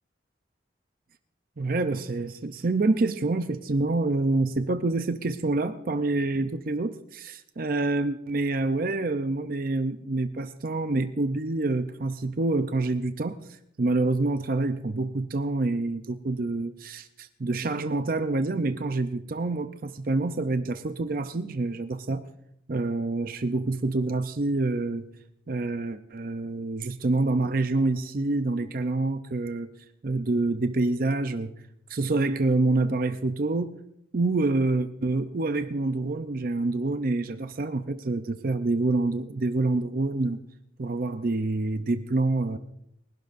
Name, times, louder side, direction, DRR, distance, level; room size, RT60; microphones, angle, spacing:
voice 1, 1.6-22.2 22.7-25.1 25.5-29.7 30.0-31.5 31.9-33.7 34.1-40.4 40.8-42.6, right 2 dB, 50° right, 10 dB, 0.6 m, -27 dB
30.0 x 12.0 x 2.6 m, 0.77 s
head